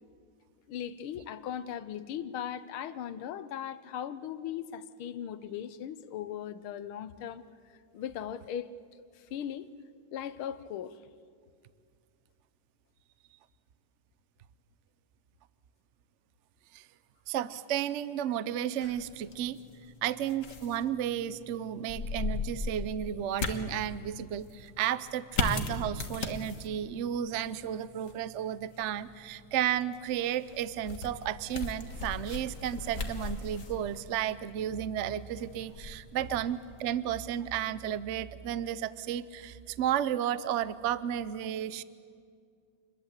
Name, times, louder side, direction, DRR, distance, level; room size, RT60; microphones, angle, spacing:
voice 1, 0.7-7.4 7.9-9.7 10.1-11.0, left 9 dB, 90° left, 14 dB, 1.7 m, -38 dB
voice 2, 17.3-19.6 20.0-41.8, right 10 dB, 80° right, 16 dB, 0.6 m, -33 dB
sound 1, 18.8-36.9, left 3 dB, 40° left, 1.8 m, -39 dB
27.0 x 21.5 x 8.2 m, 2.2 s
omnidirectional pair, 2.2 m